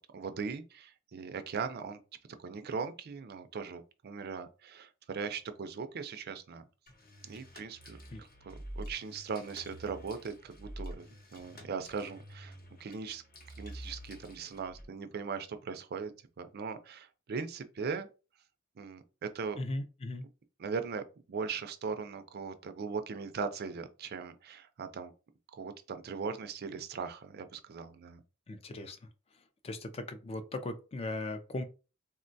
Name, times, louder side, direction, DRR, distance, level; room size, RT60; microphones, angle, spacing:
voice 1, 0.1-2.0 2.4-6.6 7.2-12.5 12.8-13.2 13.6-16.1 16.4-18.1 18.8-19.6 20.6-25.1 25.5-28.2, right 5 dB, 50° right, 0.4 m, -39 dB
sound 1, 6.9-14.9, equal, 45° left, 0.8 m, -48 dB
voice 2, 19.6-20.2 28.5-29.0 29.6-31.6, left 2 dB, 30° left, 0.4 m, -38 dB
3.6 x 2.2 x 2.6 m
head